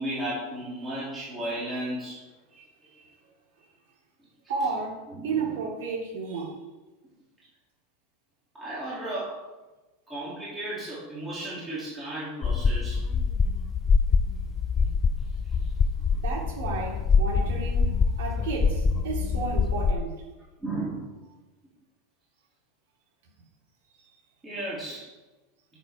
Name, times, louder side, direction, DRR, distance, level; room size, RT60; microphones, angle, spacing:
voice 1, 0.0-2.2 2.5-2.6 5.1-5.6 8.5-9.4 10.1-13.0 20.6-21.1 24.4-25.1, right 1 dB, 10° right, -9 dB, 2.9 m, -34 dB
voice 2, 4.5-6.6 16.2-20.1, right 4 dB, 85° right, -3 dB, 2.5 m, -32 dB
sound 1, 12.4-19.9, left 5 dB, 20° left, 0.3 m, -25 dB
11.0 x 6.9 x 5.0 m, 1.1 s
supercardioid pair, 165°, 0 cm